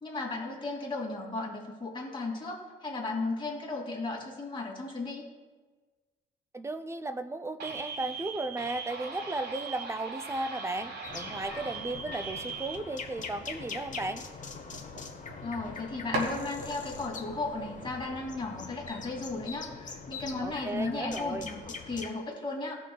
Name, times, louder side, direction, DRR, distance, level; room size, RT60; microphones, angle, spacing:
voice 1, 0.0-5.3 15.4-22.7, left 3 dB, 25° left, -2 dB, 2.6 m, -35 dB
voice 2, 6.5-14.2 20.4-21.5, right 2 dB, 15° right, 9 dB, 0.6 m, -35 dB
sound 1, 7.6-12.8, right 4 dB, 55° right, 1.5 m, -40 dB
sound 2, 11.0-22.1, left 5 dB, 40° left, 1.2 m, -43 dB
sound 3, 14.5-15.8 16.1-18.7, right 1 dB, 85° right, 2.6 m, -39 dB
18.0 x 6.1 x 2.3 m, 1.3 s
cardioid pair, 90°, 20 cm